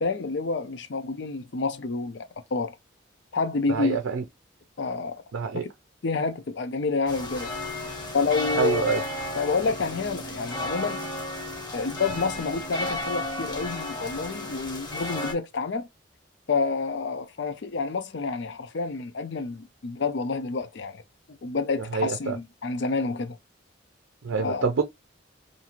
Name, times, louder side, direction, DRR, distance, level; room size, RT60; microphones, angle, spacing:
voice 1, 0.0-2.8 3.3-4.0 4.8-5.2 6.0-7.5 8.1-9.0 9.4-11.0 11.7-15.9 16.5-21.0 21.4-23.4 24.4-24.7, left 4 dB, 65° left, 0.5 m, -28 dB
voice 2, 3.7-4.2 5.3-5.6 8.5-9.0 21.9-22.4 24.2-24.8, right 6 dB, 85° right, 0.5 m, -26 dB
sound 1, 7.1-15.3, left 1 dB, 20° left, 0.7 m, -33 dB
2.6 x 2.5 x 2.9 m
head